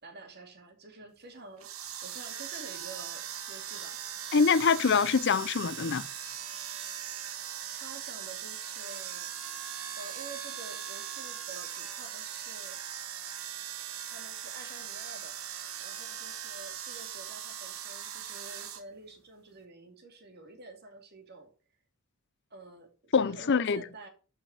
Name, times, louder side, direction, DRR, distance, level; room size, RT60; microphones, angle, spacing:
voice 1, 0.0-1.7 2.0-4.0 7.7-9.3 9.9-12.8 14.0-15.4 15.8-21.5 22.5-24.1, right 3 dB, 50° right, 2.6 m, -49 dB
electric lint remover, 1.6-18.8, right 9 dB, 75° right, 1.5 m, -40 dB
voice 2, 4.3-6.1 23.1-23.8, left 5 dB, 55° left, 0.5 m, -24 dB
11.5 x 5.8 x 5.6 m
head